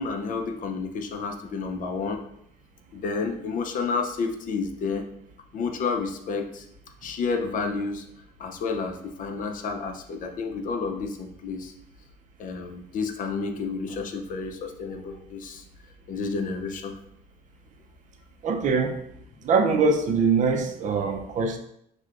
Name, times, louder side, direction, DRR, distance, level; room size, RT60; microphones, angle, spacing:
voice 1, 0.0-2.2 2.9-5.1 5.5-6.6 7.0-8.0 8.4-11.7 12.4-15.6 16.1-17.0, left 4 dB, 50° left, 6 dB, 0.5 m, -30 dB
voice 2, 18.4-19.0 19.4-21.6, right 4 dB, 50° right, 5 dB, 0.5 m, -23 dB
6.1 x 2.2 x 2.4 m, 0.75 s
cardioid pair, 110°, 17 cm